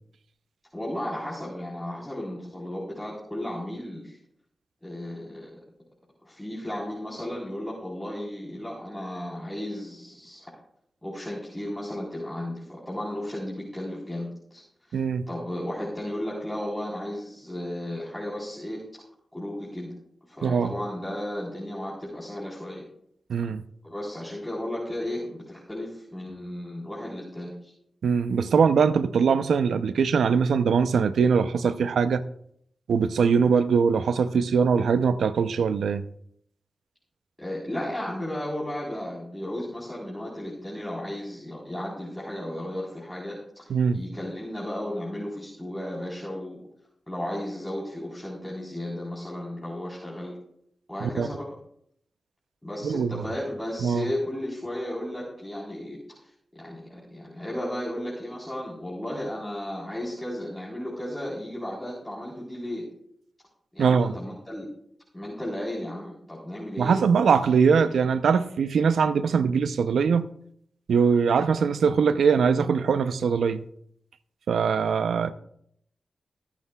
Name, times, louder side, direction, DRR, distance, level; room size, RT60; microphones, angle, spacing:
voice 1, 0.7-4.2 4.8-5.5 6.2-10.5 11.0-15.0 15.3-19.0 19.3-19.9 20.3-22.8 23.8-27.7 37.4-46.6 47.1-50.4 50.9-51.5 52.6-56.0 56.5-62.8 63.7-64.7 65.1-67.0, left 1 dB, 15° left, 3.9 m, -34 dB
voice 2, 14.9-15.2 20.4-20.7 23.3-23.6 28.0-32.2 32.9-36.0 43.7-44.0 51.0-51.3 52.8-53.2 53.8-54.1 63.8-64.1 66.8-70.3 70.9-73.6 74.5-75.3, right 6 dB, 85° right, 0.6 m, -22 dB
23.0 x 8.3 x 2.3 m
supercardioid pair, 40°, 0 cm